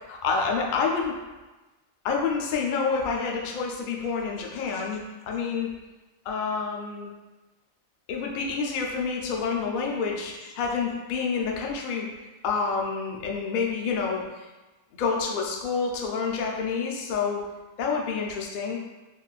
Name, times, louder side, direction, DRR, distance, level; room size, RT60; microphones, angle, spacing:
voice 1, 0.1-1.1 2.0-5.7 6.3-7.1 8.1-12.1 12.4-14.2 15.0-17.4 17.8-18.8, left 5 dB, 80° left, 0 dB, 0.4 m, -28 dB
3.8 x 2.4 x 2.3 m, 1.2 s
omnidirectional pair, 1.4 m